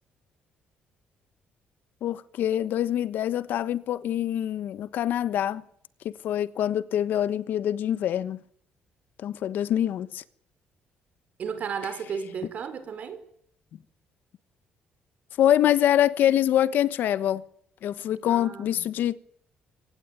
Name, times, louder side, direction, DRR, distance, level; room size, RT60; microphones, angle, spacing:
voice 1, 2.0-5.6 6.0-8.4 9.2-10.2 15.4-17.4 17.8-19.2, left 11 dB, 65° left, 1.2 m, -25 dB
voice 2, 11.4-13.2 18.3-18.8, right 6 dB, 45° right, 4.7 m, -34 dB
25.0 x 18.5 x 9.0 m
cardioid pair, 160°, 4 cm